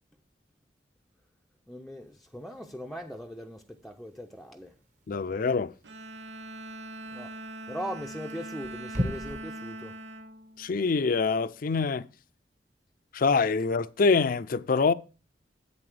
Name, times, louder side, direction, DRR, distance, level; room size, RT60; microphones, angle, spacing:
voice 1, 1.7-4.7 7.1-7.3 7.7-9.9, equal, ahead, 0.5 m, -40 dB
sound 1, 2.0-9.4, equal, 45° right, 1.3 m, -41 dB
voice 2, 5.1-5.7 10.6-12.1 13.1-14.9, left 4 dB, 55° left, 0.5 m, -25 dB
Bowed string instrument, 5.8-11.4, right 1 dB, 90° right, 0.7 m, -42 dB
11.0 x 8.5 x 3.3 m
head